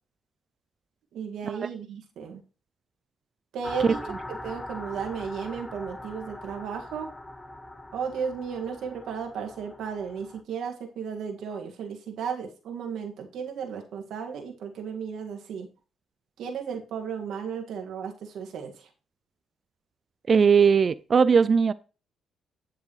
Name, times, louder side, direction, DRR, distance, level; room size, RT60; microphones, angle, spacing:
voice 1, 1.1-2.4 3.5-4.0 4.4-7.1 7.9-15.7 16.4-18.7, right 6 dB, 75° right, 2.0 m, -34 dB
sound 1, 3.6-10.4, left 1 dB, 15° left, 1.0 m, -41 dB
voice 2, 20.3-21.7, right 6 dB, 40° right, 0.4 m, -19 dB
9.8 x 7.0 x 3.2 m
cardioid pair, 90°, 0 cm